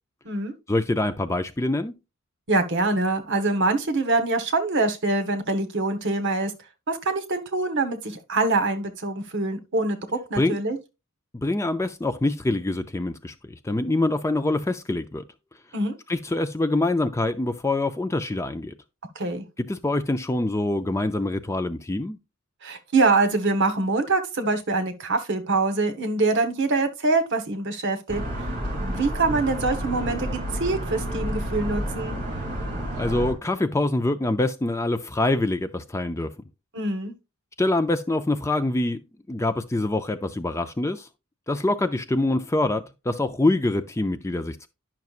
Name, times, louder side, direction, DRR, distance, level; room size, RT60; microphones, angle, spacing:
voice 1, 0.7-1.9 10.4-10.6 11.3-13.3 13.6-15.2 16.1-18.7 19.7-22.2 33.0-36.3 37.6-39.0 39.3-41.1 41.5-44.7, left 2 dB, 15° left, 0.4 m, -25 dB
voice 2, 2.5-6.5 6.9-10.8 15.7-16.0 19.1-19.4 22.6-28.2 28.8-32.2 36.7-37.1, right 3 dB, 60° right, 1.2 m, -24 dB
sound 1, 28.1-33.3, right 1 dB, 40° right, 2.6 m, -30 dB
10.5 x 5.9 x 2.4 m
head